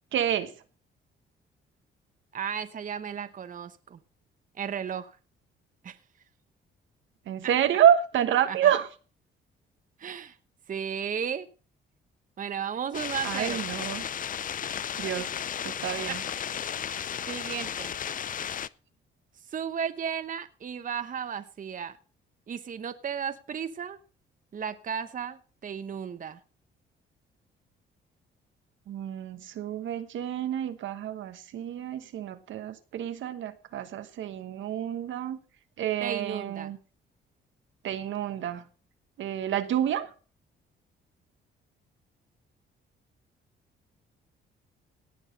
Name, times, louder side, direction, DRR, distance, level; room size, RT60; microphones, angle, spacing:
voice 1, 0.1-0.5 7.3-8.9 13.2-14.0 15.0-15.3 15.6-16.2 28.9-35.4 35.8-36.8 37.8-38.6 39.2-40.1, right 10 dB, 75° right, 10 dB, 1.2 m, -28 dB
voice 2, 2.3-4.0 4.6-5.2 5.8-6.0 8.5-8.7 10.0-10.4 10.7-11.5 12.4-13.7 16.1-16.2 17.2-18.0 19.5-21.9 22.5-24.0 24.5-26.4 36.0-36.7, right 7 dB, 40° right, 11 dB, 0.9 m, -34 dB
sound 1, 12.9-18.7, left 9 dB, 45° left, 0.5 m, -34 dB
18.0 x 6.3 x 5.3 m, 0.37 s
cardioid pair, 90°, 20 cm